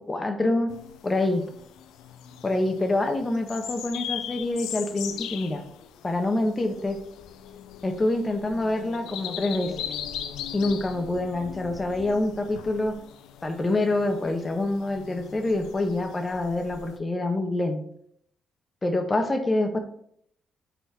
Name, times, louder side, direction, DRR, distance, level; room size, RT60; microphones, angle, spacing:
voice 1, 0.1-0.7 1.0-1.4 2.4-5.6 6.0-7.0 7.8-9.7 10.5-12.9 13.4-17.8 18.8-19.8, left 2 dB, 30° left, 5 dB, 1.4 m, -26 dB
sound 1, 0.7-17.0, left 9 dB, 90° left, 0.5 m, -40 dB
8.0 x 4.4 x 4.4 m, 0.69 s
supercardioid pair, 60°, 0 cm